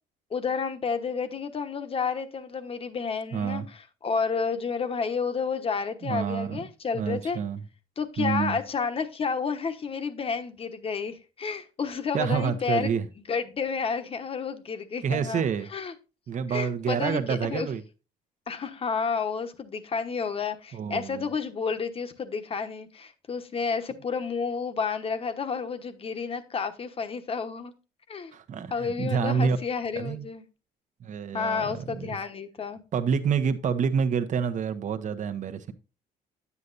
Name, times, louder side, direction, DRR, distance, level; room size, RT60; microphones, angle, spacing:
voice 1, 0.3-7.4 8.0-12.9 13.3-15.4 15.7-15.9 16.5-17.7 18.5-27.7 28.1-28.3 28.7-30.4 31.3-32.8, left 5 dB, 35° left, 1.1 m, -30 dB
voice 2, 3.3-3.7 6.0-6.6 6.9-7.6 8.2-8.6 12.1-13.1 15.0-15.7 16.3-17.8 20.7-21.3 28.3-29.6 30.0-30.3 31.0-32.2 32.9-35.7, right 6 dB, 50° right, 1.0 m, -28 dB
9.6 x 8.4 x 2.6 m
cardioid pair, 110°, 17 cm